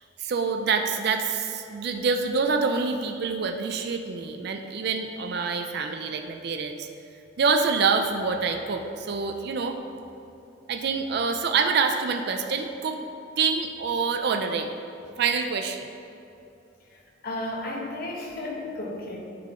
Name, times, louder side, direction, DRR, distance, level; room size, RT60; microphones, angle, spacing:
voice 1, 0.2-6.9 7.4-9.8 10.7-13.0 13.4-14.7 15.2-15.9, right 5 dB, 55° right, 5 dB, 0.4 m, -26 dB
voice 2, 17.2-19.2, left 1 dB, 50° left, -1 dB, 1.0 m, -33 dB
10.0 x 3.8 x 3.7 m, 2.7 s
head